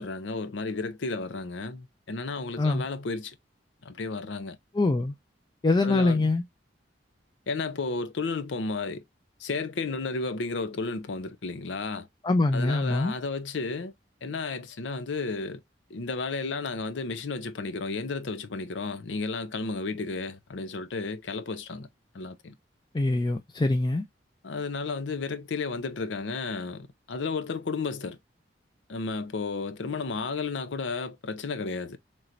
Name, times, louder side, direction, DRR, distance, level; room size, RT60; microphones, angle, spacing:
voice 1, 0.0-3.4 3.8-4.6 5.8-6.3 7.5-9.0 9.4-12.1 12.5-13.9 14.2-15.6 15.9-21.9 22.1-22.5 24.4-28.2 28.9-32.0, left 4 dB, 85° left, 0.6 m, -33 dB
voice 2, 4.7-5.1 5.6-6.4 12.2-13.1 22.9-24.0, left 2 dB, 25° left, 0.4 m, -24 dB
4.4 x 3.1 x 2.5 m
head